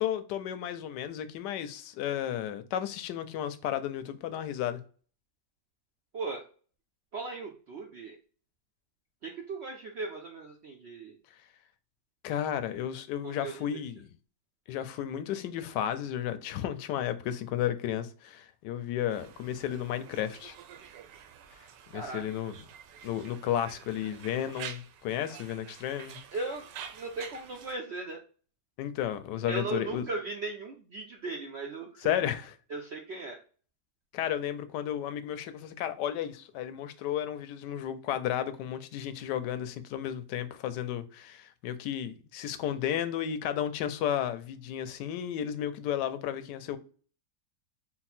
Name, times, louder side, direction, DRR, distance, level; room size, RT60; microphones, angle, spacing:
voice 1, 0.0-4.8 12.2-14.1 14.7-20.6 21.9-22.6 23.0-26.2 28.8-30.1 32.0-32.5 34.1-46.8, left 10 dB, 80° left, 1.2 m, -33 dB
voice 2, 7.1-8.2 9.2-11.2 13.2-13.7 21.9-22.2 26.3-26.6 26.9-28.2 29.5-32.2 32.7-33.4, right 3 dB, 65° right, 0.6 m, -37 dB
Conversation, 19.1-27.7, right 8 dB, 85° right, 1.2 m, -48 dB
4.1 x 2.1 x 4.2 m
omnidirectional pair, 1.8 m